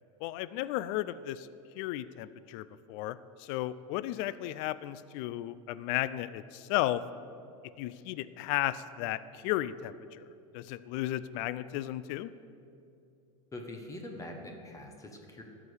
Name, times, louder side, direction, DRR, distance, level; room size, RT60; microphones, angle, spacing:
voice 1, 0.2-1.5 1.8-7.0 7.8-10.2 10.5-12.3, left 14 dB, 60° left, 16 dB, 0.4 m, -34 dB
voice 2, 13.5-15.4, left 1 dB, 20° left, 3 dB, 1.2 m, -43 dB
13.5 x 5.0 x 8.0 m, 2.6 s
supercardioid pair, 120°, 17 cm